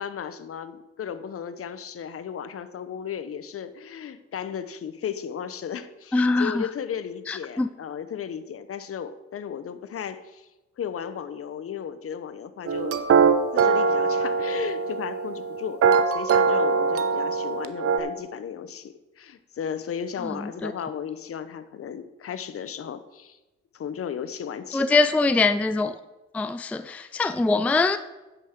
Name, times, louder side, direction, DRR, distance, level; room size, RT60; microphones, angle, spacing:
voice 1, 0.0-10.5 10.8-13.0 13.5-23.4 23.7-25.1 27.0-27.1, left 8 dB, 50° left, 0.8 m, -35 dB
voice 2, 6.1-6.6 7.3-7.7 20.6-20.7 24.7-26.0 26.3-28.0, left 3 dB, 5° left, 0.4 m, -23 dB
sound 1, 12.7-18.0, right 5 dB, 50° right, 0.8 m, -22 dB
9.8 x 5.9 x 6.5 m
cardioid pair, 90°, 30 cm